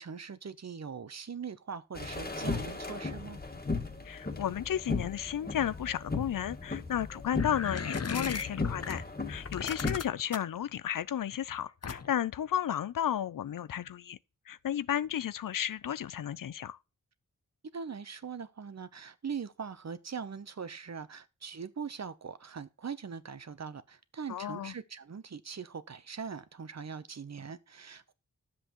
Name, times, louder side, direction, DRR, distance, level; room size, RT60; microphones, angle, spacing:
voice 1, 0.0-3.4 17.7-28.1, right 6 dB, 55° right, 0.8 m, -41 dB
sound 1, 2.0-10.0, left 3 dB, 30° left, 1.8 m, -36 dB
voice 2, 4.0-14.2 14.5-16.8 24.3-24.7, left 10 dB, 80° left, 0.5 m, -33 dB
sound 2, 7.4-9.0 9.4-10.6 11.8-12.3, left 5 dB, 50° left, 0.8 m, -36 dB
10.0 x 7.5 x 3.0 m
cardioid pair, 50°, 32 cm